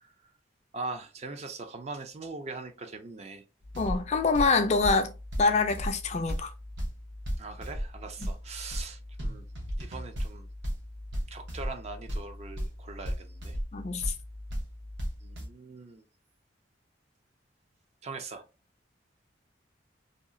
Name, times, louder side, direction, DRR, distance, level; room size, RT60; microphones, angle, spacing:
voice 1, 0.7-3.4 7.4-9.5 9.8-10.5 11.3-13.6 15.2-16.0 18.0-18.4, right 3 dB, 35° right, 0.4 m, -41 dB
sound 1, 3.6-15.5, equal, 70° right, 0.8 m, -36 dB
voice 2, 3.8-5.1 5.4-6.5 13.7-14.1, left 4 dB, 35° left, 0.3 m, -25 dB
2.8 x 2.4 x 2.5 m
head